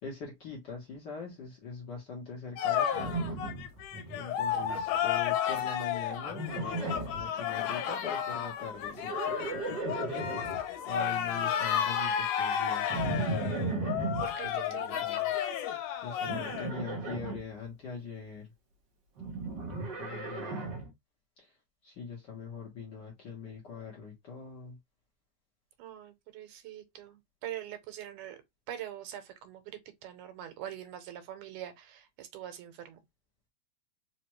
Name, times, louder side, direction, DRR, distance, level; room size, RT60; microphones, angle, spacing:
voice 1, 0.0-3.2 4.1-9.1 10.9-13.4 14.4-15.3 16.0-18.5 20.0-20.8 21.4-21.5 21.8-24.8, left 5 dB, 60° left, 1.2 m, -42 dB
sound 1, 2.6-16.7, left 9 dB, 80° left, 2.2 m, -32 dB
Livestock farm animals working animals, 2.9-4.2 4.5-5.0 6.3-7.3 8.9-10.6 12.9-14.3 16.3-17.4 19.2-20.9, right 3 dB, 60° right, 1.2 m, -35 dB
voice 2, 10.9-11.7 14.2-15.0 20.5-20.7 25.8-28.4 28.7-33.0, right 11 dB, 85° right, 2.2 m, -44 dB
5.0 x 2.2 x 3.1 m
omnidirectional pair, 3.5 m